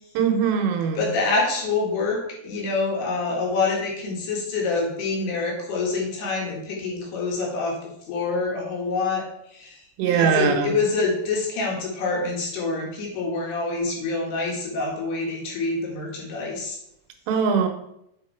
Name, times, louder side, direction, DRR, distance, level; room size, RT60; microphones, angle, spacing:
voice 1, 0.1-1.0 10.0-10.7 17.3-17.7, right 6 dB, 80° right, 4 dB, 3.1 m, -21 dB
voice 2, 1.0-7.8 8.1-9.8 10.0-16.8, left 3 dB, 70° left, -1 dB, 3.6 m, -26 dB
8.2 x 5.2 x 4.6 m, 0.76 s
omnidirectional pair, 5.1 m